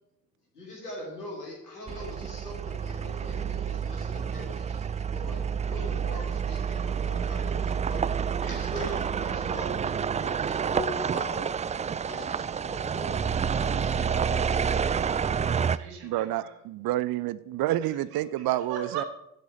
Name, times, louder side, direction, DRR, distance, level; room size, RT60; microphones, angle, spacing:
voice 1, 0.5-5.4 5.7-8.0 8.4-11.7 12.1-14.8, left 1 dB, 85° left, -1 dB, 3.2 m, -42 dB
sound 1, 1.9-15.8, right 7 dB, 15° right, 0.4 m, -29 dB
voice 2, 13.3-16.5 18.7-19.0, right 6 dB, 75° right, 3 dB, 2.2 m, -41 dB
voice 3, 16.0-19.0, right 14 dB, 50° right, 17 dB, 0.7 m, -29 dB
12.0 x 6.2 x 8.7 m, 0.81 s
figure-of-eight pair, 45°, 45 cm